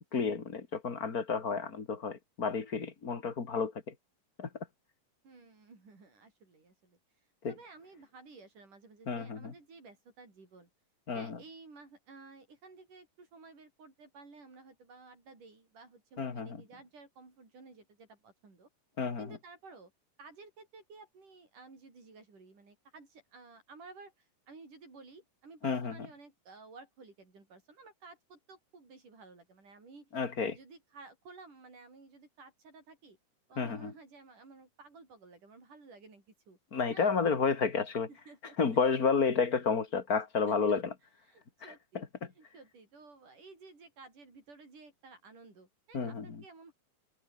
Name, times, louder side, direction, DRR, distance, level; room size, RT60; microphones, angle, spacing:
voice 1, 0.1-3.9 4.4-4.5 7.4-7.5 9.1-9.5 11.1-11.4 16.2-16.6 19.0-19.4 25.6-26.0 30.1-30.6 33.6-33.9 36.7-38.1 38.6-40.9 41.6-42.3 45.9-46.4, left 5 dB, 30° left, 2.4 m, -31 dB
voice 2, 5.2-7.0 7.5-10.7 11.1-18.7 19.2-19.9 20.2-30.1 30.5-33.2 33.5-36.6 36.9-37.1 38.1-38.6 39.0-39.1 40.5-40.8 41.3-42.1 42.4-46.7, right 3 dB, 65° right, 8.9 m, -54 dB
omnidirectional pair, 3.9 m